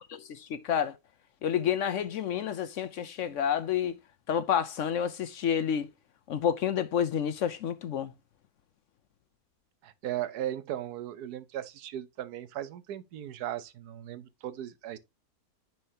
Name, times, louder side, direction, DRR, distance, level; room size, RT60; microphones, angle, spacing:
voice 1, 0.1-1.0 1.4-3.9 4.3-5.9 6.3-8.1, left 8 dB, 65° left, 0.8 m, -29 dB
voice 2, 9.8-15.0, right 12 dB, 85° right, 1.3 m, -37 dB
9.9 x 4.4 x 2.8 m
omnidirectional pair, 1.6 m